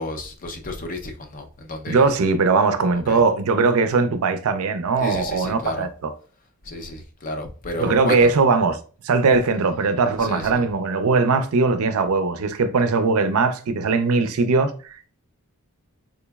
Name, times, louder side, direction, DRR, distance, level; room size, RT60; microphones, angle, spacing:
voice 1, 0.0-2.2 2.9-3.2 5.0-5.9 6.6-8.3 10.2-10.7, left 2 dB, 40° left, 0.5 m, -32 dB
voice 2, 1.9-5.9 7.8-8.8 9.0-15.1, right 4 dB, 70° right, 0.4 m, -20 dB
3.7 x 3.0 x 2.2 m
head